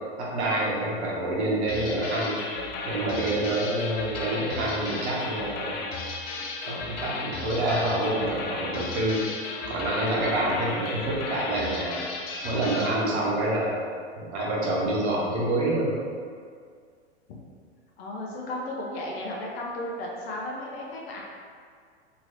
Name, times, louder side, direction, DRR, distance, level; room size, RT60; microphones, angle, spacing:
voice 1, 0.2-2.4 2.8-5.8 6.7-9.3 9.7-12.0 12.4-13.7 14.2-15.9, right 1 dB, 75° right, -5 dB, 1.0 m, -27 dB
sound 1, 1.7-13.0, left 3 dB, 30° left, 0.4 m, -35 dB
voice 2, 18.0-21.2, left 1 dB, 65° left, -3 dB, 0.7 m, -34 dB
3.0 x 3.0 x 2.5 m, 2.1 s
hypercardioid pair, 105°, 34 cm